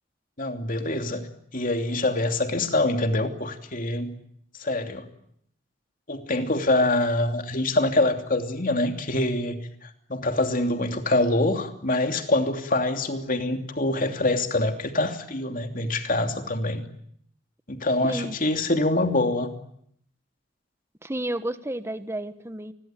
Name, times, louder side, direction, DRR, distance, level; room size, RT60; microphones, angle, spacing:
voice 1, 0.4-1.3 1.5-4.1 4.6-5.0 6.1-16.8 17.7-19.5, left 2 dB, 45° left, 6 dB, 2.9 m, -25 dB
voice 2, 18.0-18.4 21.0-22.7, right 1 dB, 15° right, 11 dB, 1.3 m, -31 dB
28.5 x 21.5 x 9.0 m, 0.71 s
head